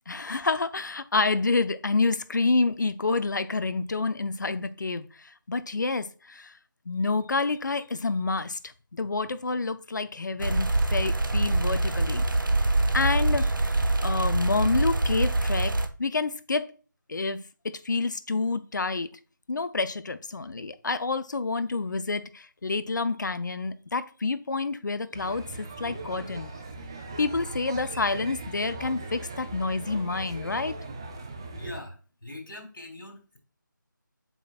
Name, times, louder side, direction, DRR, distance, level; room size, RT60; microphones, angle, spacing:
voice 1, 0.1-6.5 6.9-12.2 12.9-13.6 14.0-15.7 16.0-16.7 17.1-19.1 19.5-26.5 27.2-30.8, left 3 dB, 60° left, 0.6 m, -28 dB
sound 1, 10.4-15.9, right 2 dB, 75° right, 0.9 m, -24 dB
sound 2, 25.1-31.8, right 2 dB, 15° right, 0.4 m, -39 dB
voice 2, 31.6-33.4, left 1 dB, 85° left, 3.0 m, -42 dB
8.0 x 5.9 x 2.4 m
figure-of-eight pair, 165°, 11 cm